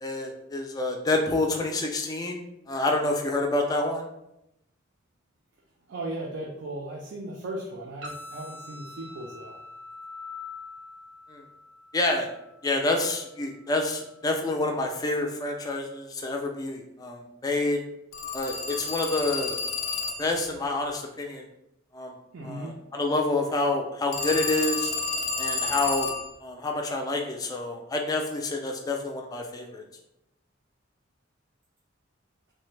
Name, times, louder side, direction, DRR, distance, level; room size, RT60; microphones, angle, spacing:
voice 1, 0.0-2.4 2.7-4.1 11.3-11.4 11.9-12.3 12.6-17.8 18.3-19.6 20.2-21.4 21.9-22.1 22.4-24.9 25.4-26.1 26.4-29.8, left 2 dB, 20° left, 2 dB, 0.4 m, -28 dB
voice 2, 5.9-9.6 22.3-22.8, right 1 dB, 60° right, -1 dB, 0.4 m, -37 dB
sound 1, 8.0-16.0, left 3 dB, 85° right, 0.8 m, -46 dB
Telephone, 18.1-20.4 24.1-26.3, left 4 dB, 85° left, 0.5 m, -30 dB
3.2 x 2.1 x 3.1 m, 0.84 s
head